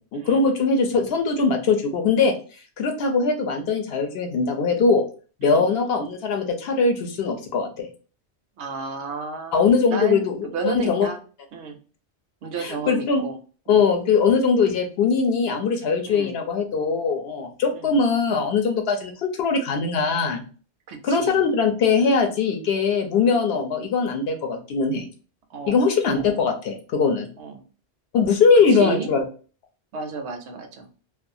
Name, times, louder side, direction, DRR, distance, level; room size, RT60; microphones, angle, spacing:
voice 1, 0.0-2.3 2.8-5.0 5.4-7.9 9.5-11.1 12.6-13.2 13.7-20.4 21.0-25.1 25.7-27.3 28.1-29.2, left 5 dB, 70° left, 4 dB, 0.8 m, -21 dB
voice 2, 8.6-11.2 11.5-11.8 12.4-13.4 13.7-13.8 16.1-16.4 17.7-17.9 20.9-21.4 25.5-25.8 27.4-27.6 28.5-29.1 29.9-30.9, right 4 dB, 80° right, 5 dB, 0.9 m, -32 dB
2.4 x 2.3 x 2.6 m, 0.38 s
omnidirectional pair, 1.1 m